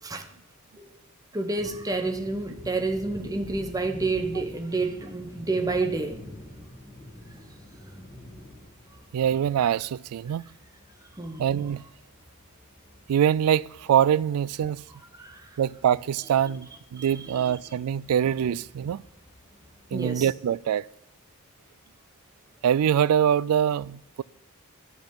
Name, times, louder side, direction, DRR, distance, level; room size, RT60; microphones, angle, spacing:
voice 1, 1.3-6.3 7.3-7.5 7.8-8.0 11.2-11.4 15.1-15.6 17.0-17.5 19.9-20.3, right 3 dB, 15° right, 1.0 m, -30 dB
sound 1, 1.5-19.9, left 1 dB, 45° left, 5.3 m, -48 dB
voice 2, 9.1-10.4 11.4-11.8 13.1-14.8 15.6-19.0 19.9-20.9 22.6-24.2, right 9 dB, 90° right, 0.3 m, -24 dB
10.5 x 6.1 x 8.6 m
head